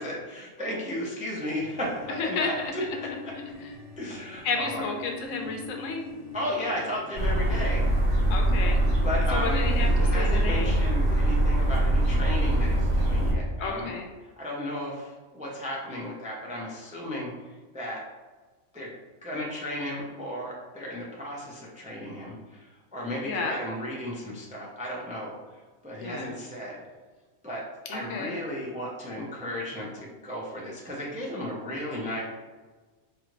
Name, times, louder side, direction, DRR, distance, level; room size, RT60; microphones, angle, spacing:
voice 1, 0.0-3.3 4.0-4.9 6.3-7.9 9.0-13.9 14.4-17.3 17.7-18.0 18.7-18.9 19.2-25.4 25.8-26.8 27.4-27.6 27.9-32.2, equal, 10° right, -4 dB, 0.4 m, -34 dB
sound 1, 1.6-8.0, left 5 dB, 35° left, 1.3 m, -44 dB
voice 2, 2.2-2.5 4.4-6.0 8.3-8.8 9.3-9.9 10.1-10.7 13.6-14.1 23.2-23.6 26.0-26.3 27.9-28.3, left 4 dB, 75° left, 3 dB, 1.0 m, -31 dB
sound 2, 7.2-13.3, right 1 dB, 75° right, 1.9 m, -23 dB
4.7 x 2.5 x 3.0 m, 1.3 s
omnidirectional pair, 1.4 m